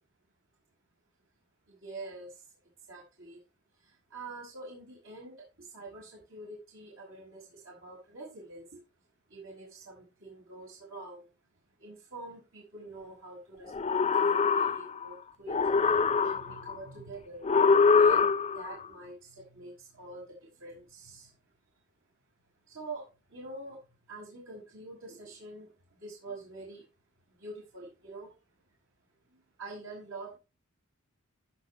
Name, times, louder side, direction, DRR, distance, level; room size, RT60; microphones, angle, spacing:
voice 1, 1.7-2.4 2.9-3.4 3.8-8.8 9.3-11.3 11.8-17.5 17.9-21.4 22.7-23.8 24.1-26.8 27.3-28.3 29.3-30.4, right 2 dB, 70° right, -2 dB, 6.1 m, -46 dB
sound 1, 13.7-15.1 15.5-16.7 17.4-18.7, left 5 dB, 30° left, 0.5 m, -24 dB
16.5 x 6.8 x 3.2 m, 0.28 s
head